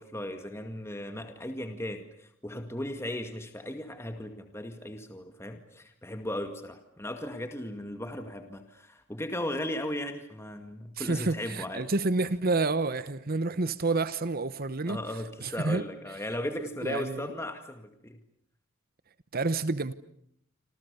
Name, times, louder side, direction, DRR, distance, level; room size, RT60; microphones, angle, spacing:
voice 1, 0.0-11.9 14.9-18.2, left 1 dB, 15° left, 2.1 m, -37 dB
voice 2, 11.0-15.0 15.4-15.8 16.8-17.3 19.3-19.9, right 3 dB, 45° right, 1.0 m, -29 dB
27.5 x 27.5 x 6.9 m
head